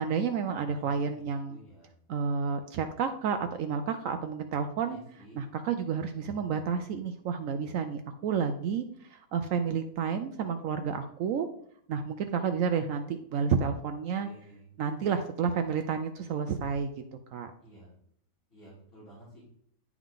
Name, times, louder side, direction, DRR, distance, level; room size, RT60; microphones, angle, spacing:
voice 1, 0.0-1.6 2.1-11.5 11.9-14.3 14.8-16.9 17.3-17.5, right 6 dB, 70° right, 7 dB, 0.9 m, -30 dB
voice 2, 0.7-1.9 4.9-5.4 14.2-14.7 17.6-17.9 18.5-19.4, equal, 40° left, -9 dB, 3.1 m, -52 dB
10.5 x 3.6 x 3.7 m, 0.65 s
omnidirectional pair, 1.5 m